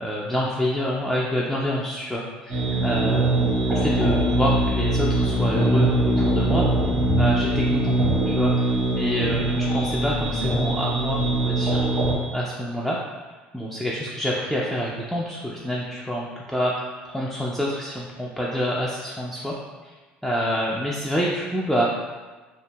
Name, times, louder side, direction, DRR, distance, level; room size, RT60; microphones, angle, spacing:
voice 1, 0.0-6.7 7.2-8.0 8.3-11.8 12.3-13.0 13.5-19.6 19.8-19.9 20.2-22.1, equal, ahead, -5 dB, 0.3 m, -27 dB
sound 1, 2.5-12.1, right 1 dB, 30° right, 0.9 m, -22 dB
2.7 x 2.5 x 2.2 m, 1.3 s
hypercardioid pair, 75°, 5 cm